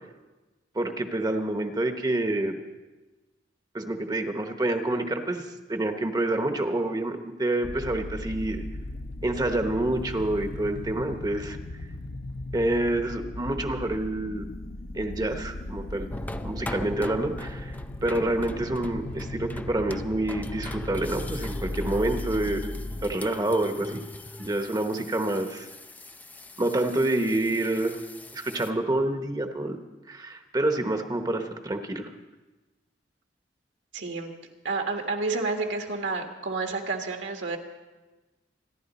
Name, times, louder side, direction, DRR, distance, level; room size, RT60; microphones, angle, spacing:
voice 1, 0.7-2.6 3.7-8.6 9.2-11.6 12.5-14.5 14.9-16.1 16.4-17.8 18.0-22.7 23.0-24.0 24.4-25.7 26.6-28.0 28.3-29.8 30.1-32.1, right 1 dB, 20° right, 6 dB, 0.9 m, -27 dB
sound 1, 7.6-23.2, left 1 dB, 55° left, 0.7 m, -37 dB
sound 2, 16.1-28.7, left 1 dB, 10° left, 0.4 m, -41 dB
voice 2, 33.9-34.3 34.6-37.6, right 3 dB, 75° right, 3 dB, 1.7 m, -30 dB
26.0 x 11.0 x 4.2 m, 1.2 s
head